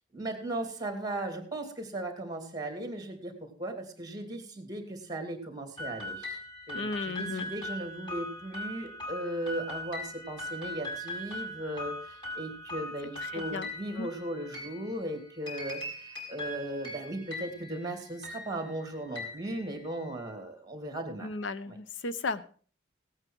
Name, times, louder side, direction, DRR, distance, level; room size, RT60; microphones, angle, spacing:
voice 1, 0.1-6.4 6.7-21.3 21.7-21.8, right 1 dB, 20° right, 5 dB, 2.8 m, -37 dB
sound 1, 5.8-20.2, left 1 dB, 25° left, 5.0 m, -41 dB
voice 2, 6.7-7.5 13.3-13.7 14.0-14.1 21.2-22.5, left 3 dB, 75° left, 14 dB, 0.8 m, -35 dB
17.0 x 8.9 x 4.6 m, 0.42 s
head